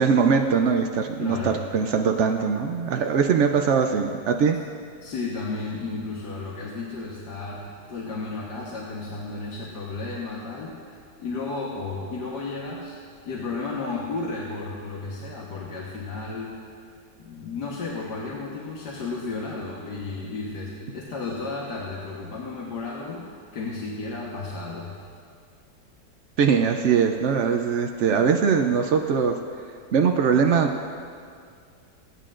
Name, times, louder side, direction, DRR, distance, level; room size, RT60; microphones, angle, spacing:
voice 1, 0.0-4.6 26.4-29.4 29.9-31.0, right 6 dB, 85° right, 4 dB, 0.6 m, -21 dB
voice 2, 1.2-1.6 5.0-10.8 11.2-13.0 13.3-16.6 17.2-25.0, left 3 dB, 70° left, -4 dB, 1.8 m, -33 dB
23.5 x 9.2 x 2.5 m, 2.3 s
omnidirectional pair, 1.9 m